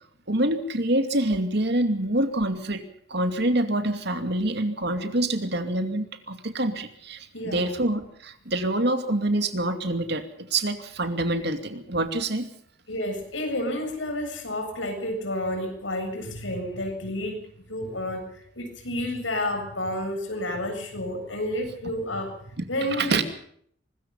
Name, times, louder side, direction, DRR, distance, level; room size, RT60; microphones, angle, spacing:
voice 1, 0.3-2.8 3.1-12.5 22.6-22.7 22.9-23.2, right 1 dB, 60° right, 7 dB, 2.6 m, -26 dB
voice 2, 7.3-7.8 12.9-17.4 17.7-22.3 22.7-23.2, left 1 dB, 85° left, 5 dB, 7.4 m, -30 dB
24.0 x 21.0 x 5.6 m, 0.65 s
head